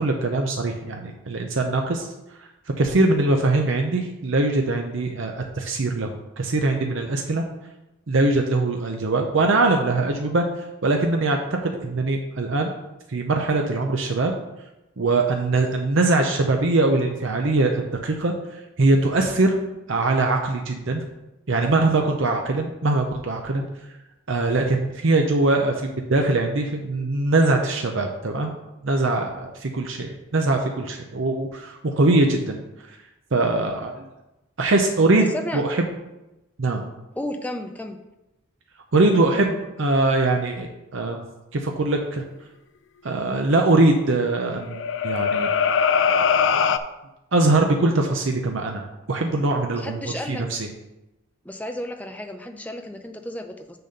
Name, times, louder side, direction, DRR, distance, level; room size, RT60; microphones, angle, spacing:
voice 1, 0.0-2.1 2.8-6.1 6.4-7.4 8.1-10.5 10.8-12.7 13.1-14.3 15.0-19.6 19.9-21.0 21.5-23.7 24.3-28.5 28.8-32.6 33.3-34.0 34.6-35.9 36.6-36.9 38.9-41.2 41.5-42.2 43.0-45.5 47.3-50.0 50.3-50.7, right 2 dB, 65° right, 3 dB, 0.7 m, -22 dB
voice 2, 37.2-38.0 49.8-50.4 51.4-53.8, left 1 dB, 5° left, 5 dB, 0.5 m, -33 dB
sound 1, 44.6-46.8, left 6 dB, 60° left, 0.4 m, -21 dB
6.6 x 4.1 x 6.6 m, 0.97 s
head